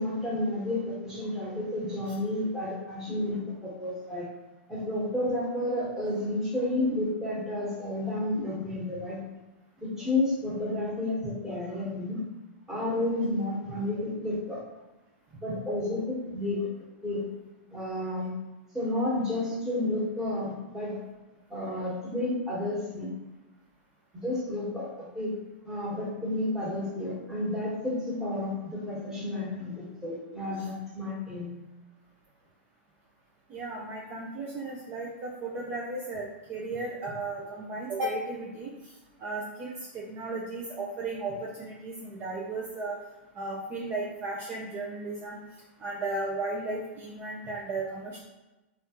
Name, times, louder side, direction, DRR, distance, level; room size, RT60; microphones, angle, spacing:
voice 1, 0.0-4.3 4.7-9.2 9.8-12.2 12.7-14.6 15.4-16.7 17.0-17.2 17.7-18.3 18.7-21.0 21.5-23.1 24.1-24.9 25.1-25.3 25.6-31.5, left 1 dB, 5° right, -7 dB, 1.2 m, -31 dB
voice 2, 33.5-38.9 39.2-43.0 43.3-45.4 45.8-48.2, right 2 dB, 30° right, -3 dB, 0.5 m, -35 dB
3.1 x 2.4 x 2.9 m, 1.1 s
hypercardioid pair, 120°, 6 cm